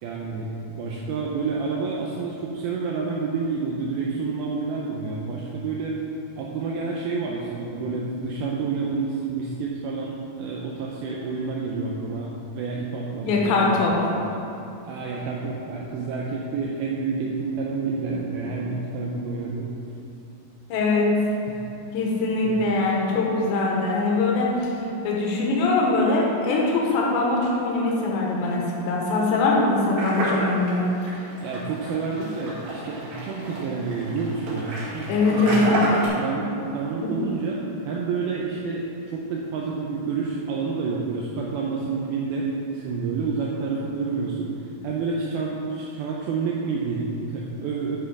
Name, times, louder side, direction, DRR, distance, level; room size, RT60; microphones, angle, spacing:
voice 1, 0.0-6.0 6.4-13.9 14.8-19.7 21.5-21.7 22.4-22.6 31.4-44.5 44.8-48.0, right 4 dB, 80° right, -3 dB, 2.3 m, -29 dB
voice 2, 13.2-14.2 20.7-21.1 21.9-24.7 25.0-30.9 35.1-35.7, left 3 dB, 80° left, -2 dB, 3.5 m, -22 dB
sound 1, 30.0-36.1, right 1 dB, 60° right, 3.5 m, -30 dB
9.9 x 6.0 x 4.9 m, 2.9 s
omnidirectional pair, 5.0 m